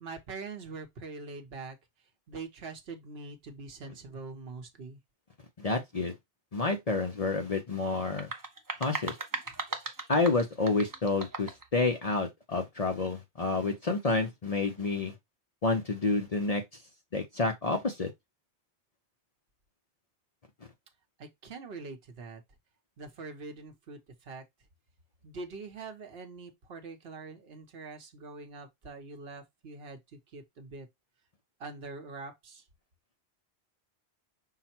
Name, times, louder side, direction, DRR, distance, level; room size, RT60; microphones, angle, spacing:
voice 1, 0.0-1.8 2.3-5.0 21.2-22.4 23.0-24.4 25.2-30.9 31.6-32.6, right 3 dB, 65° right, 1.2 m, -44 dB
voice 2, 5.6-6.1 6.5-8.3 8.8-9.2 10.1-15.1 15.6-16.6 17.1-18.1, left 3 dB, 40° left, 0.7 m, -29 dB
sound 1, 8.0-11.7, right 3 dB, 25° right, 0.6 m, -38 dB
5.7 x 2.1 x 4.3 m
omnidirectional pair, 1.1 m